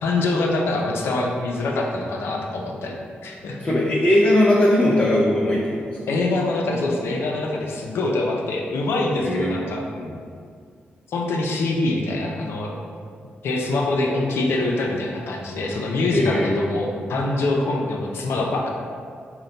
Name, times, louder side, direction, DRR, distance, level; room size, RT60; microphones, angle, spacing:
voice 1, 0.0-3.6 6.1-9.8 11.1-12.8 13.4-18.7, left 2 dB, 80° left, 0 dB, 0.5 m, -24 dB
voice 2, 3.6-6.1 9.2-9.5 9.9-10.1 16.1-16.5, left 1 dB, 35° left, -6 dB, 0.6 m, -19 dB
3.9 x 2.2 x 3.9 m, 2.1 s
cardioid pair, 65°, 4 cm